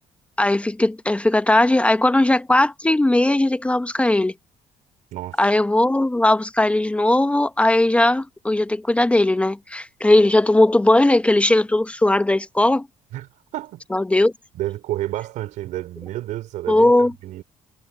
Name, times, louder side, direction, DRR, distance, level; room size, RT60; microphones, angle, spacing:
voice 1, 0.4-4.3 5.4-12.9 13.9-14.3 16.7-17.1, left 1 dB, 10° left, 0.8 m, -18 dB
voice 2, 13.1-13.8 14.5-17.4, right 15 dB, 80° right, 4.8 m, -30 dB
cardioid pair, 120°, 13 cm